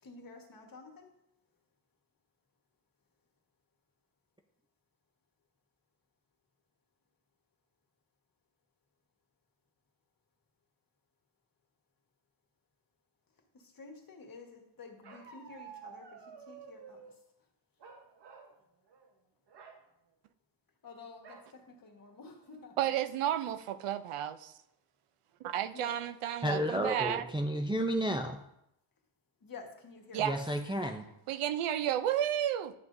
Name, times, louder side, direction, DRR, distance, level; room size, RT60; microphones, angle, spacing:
voice 1, 0.0-1.1 13.5-17.2 20.8-22.9 25.7-26.1 29.4-30.4, left 4 dB, 45° left, 2 dB, 1.5 m, -51 dB
Bark, 15.0-17.1 17.8-18.5 18.9-19.1 19.5-19.8 21.2-21.5 22.1-22.2 22.5-22.9, right 6 dB, 55° right, 1.1 m, -51 dB
voice 2, 22.8-24.5 25.4-27.2 30.1-30.3 31.3-32.7, right 11 dB, 90° right, 12 dB, 0.6 m, -32 dB
voice 3, 26.4-28.4 30.2-31.1, right 1 dB, 10° right, 3 dB, 0.4 m, -32 dB
10.5 x 5.9 x 2.6 m, 0.80 s
cardioid pair, 105°, 50 cm